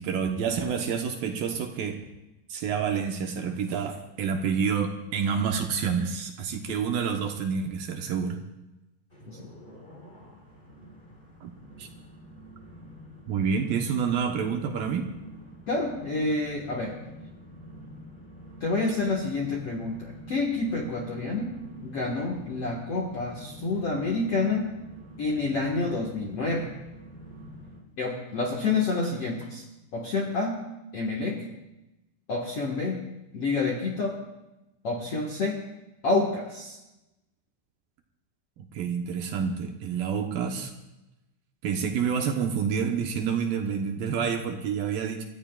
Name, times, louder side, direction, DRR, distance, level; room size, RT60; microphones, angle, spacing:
voice 1, 0.0-2.0 2.5-8.4 11.4-11.5 11.8-11.9 13.3-15.1 38.7-40.7 41.6-45.3, right 6 dB, 75° right, 3 dB, 2.2 m, -28 dB
sound 1, 9.1-27.8, equal, 15° left, 2.4 m, -47 dB
voice 2, 15.7-17.0 18.6-21.5 21.8-24.7 25.2-26.7 28.0-29.6 29.9-30.6 30.9-31.4 32.3-33.0 33.3-34.2 34.8-35.6 36.0-36.8, left 3 dB, 65° left, -2 dB, 1.4 m, -28 dB
29.5 x 14.5 x 2.4 m, 0.97 s
omnidirectional pair, 5.2 m